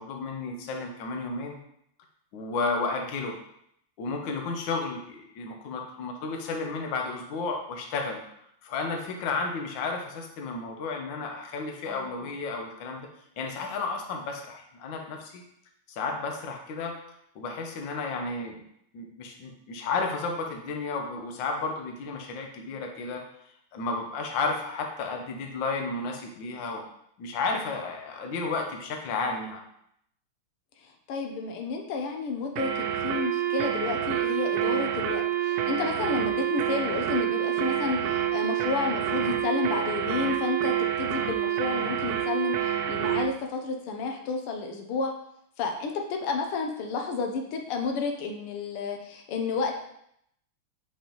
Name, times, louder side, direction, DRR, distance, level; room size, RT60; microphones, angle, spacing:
voice 1, 0.0-1.6 2.3-3.3 4.0-8.2 8.6-13.1 13.4-15.4 15.9-16.9 17.3-18.7 18.9-23.2 23.7-26.8 27.2-29.6, left 4 dB, 65° left, 2 dB, 1.5 m, -32 dB
voice 2, 30.8-45.1 45.6-49.7, left 4 dB, 90° left, 3 dB, 1.7 m, -31 dB
sound 1, 32.6-43.3, right 10 dB, 75° right, 1.3 m, -28 dB
6.7 x 5.3 x 3.0 m, 0.73 s
omnidirectional pair, 2.4 m